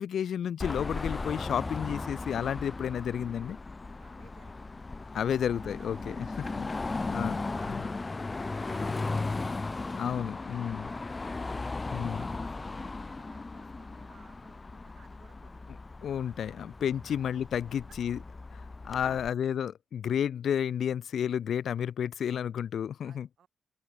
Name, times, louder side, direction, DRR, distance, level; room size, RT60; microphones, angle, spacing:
voice 1, 0.0-3.6 5.1-6.3 6.5-6.7 7.1-7.4 7.7-7.8 10.0-10.9 11.9-12.2 16.0-18.2 18.5-23.3, left 9 dB, 75° left, 0.9 m, -31 dB
Car passing by / Traffic noise roadway noise / Engine, 0.6-19.3, left 3 dB, 30° left, 0.5 m, -37 dB
voice 2, 3.9-4.7 5.3-5.4 5.8-6.5 6.9-9.8 10.2-11.6 11.9-15.7 16.6-16.7 17.0-17.2 17.7-18.0 18.9-19.3 23.0-23.5, right 8 dB, 70° right, 7.3 m, -61 dB
open air
cardioid pair, 90°, 0 cm